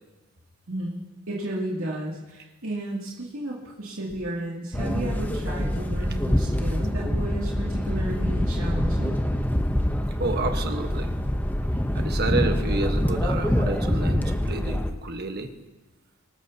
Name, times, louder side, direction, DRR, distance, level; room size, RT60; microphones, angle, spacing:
voice 1, 0.7-1.0 1.3-9.2, right 1 dB, 70° right, -5 dB, 2.6 m, -33 dB
sound 1, 4.7-14.9, equal, 10° left, 0.8 m, -25 dB
voice 2, 10.2-11.1 11.9-15.5, right 2 dB, 50° right, 5 dB, 1.3 m, -30 dB
25.5 x 13.0 x 2.8 m, 1.1 s
head